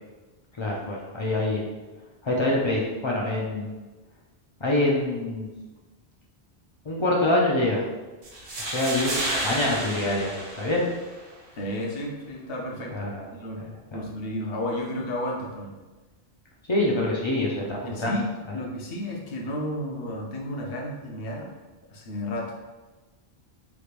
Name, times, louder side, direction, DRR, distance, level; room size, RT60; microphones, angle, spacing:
voice 1, 0.6-1.7 2.2-3.7 4.6-5.5 6.9-7.8 8.6-10.8 12.9-13.2 13.9-14.0 16.7-18.1, left 1 dB, 40° left, -4 dB, 0.4 m, -25 dB
sound 1, 8.2-11.2, right 1 dB, 70° right, 1.0 m, -31 dB
voice 2, 11.5-13.6 13.9-15.8 17.7-18.2 18.5-21.5 21.9-22.5, left 1 dB, 70° left, -1 dB, 0.9 m, -32 dB
3.4 x 3.0 x 2.4 m, 1.2 s
omnidirectional pair, 1.0 m